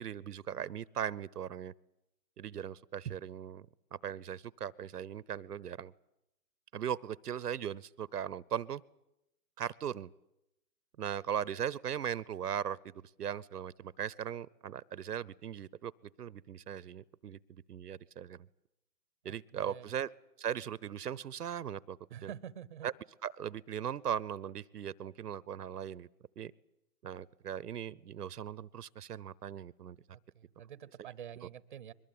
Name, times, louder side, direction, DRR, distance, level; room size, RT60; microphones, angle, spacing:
voice 1, 0.0-1.7 2.4-5.9 6.7-8.8 9.6-10.1 11.0-18.5 19.2-20.1 20.4-22.3 22.8-22.9 23.2-26.1 26.4-26.5 27.0-30.0, right 9 dB, 75° right, 22 dB, 0.8 m, -39 dB
voice 2, 19.2-19.9 22.1-22.9 30.1-31.9, right 9 dB, 30° right, 19 dB, 0.9 m, -48 dB
22.5 x 20.5 x 8.7 m, 0.89 s
hypercardioid pair, 160°, 47 cm